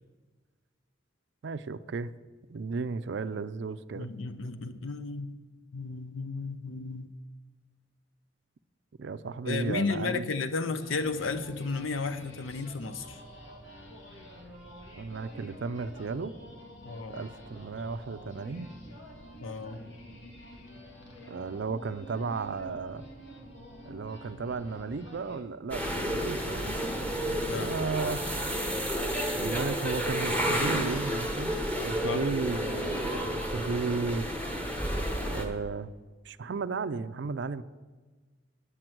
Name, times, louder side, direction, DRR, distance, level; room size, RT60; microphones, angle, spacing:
voice 1, 1.4-2.1 2.5-4.1 9.0-10.3 14.9-16.3 17.1-18.7 21.3-23.1 23.9-28.2 29.3-34.3 35.3-35.9 36.3-37.6, right 4 dB, 60° right, 14 dB, 0.4 m, -34 dB
voice 2, 4.0-5.4 5.7-7.1 9.4-13.2 16.8-17.2 19.4-19.9 27.5-27.7 32.0-32.3, left 4 dB, 80° left, 11 dB, 0.7 m, -33 dB
sound 1, 10.8-25.4, equal, 65° left, 1.9 m, -48 dB
sound 2, 25.7-35.4, equal, 5° left, 1.0 m, -31 dB
9.9 x 6.0 x 7.8 m, 1.3 s
head